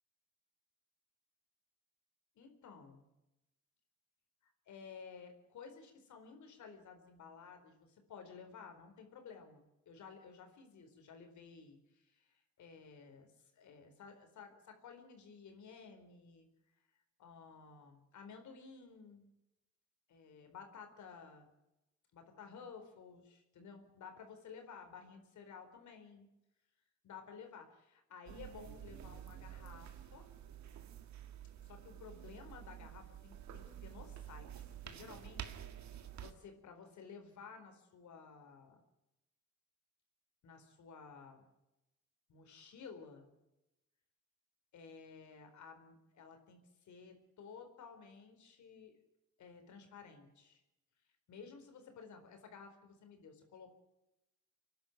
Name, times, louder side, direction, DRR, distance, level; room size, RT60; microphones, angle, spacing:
voice 1, 2.4-3.0 4.4-16.5 17.2-19.3 20.1-21.5 22.1-26.3 27.0-30.3 31.6-38.8 40.4-41.5 42.3-43.3 44.7-49.0 49.4-50.6 51.3-53.7, left 5 dB, 70° left, 6 dB, 4.4 m, -54 dB
sound 1, 28.3-36.3, right 10 dB, 65° right, 2.0 m, -50 dB
26.0 x 11.5 x 9.2 m, 0.93 s
cardioid pair, 90°, 30 cm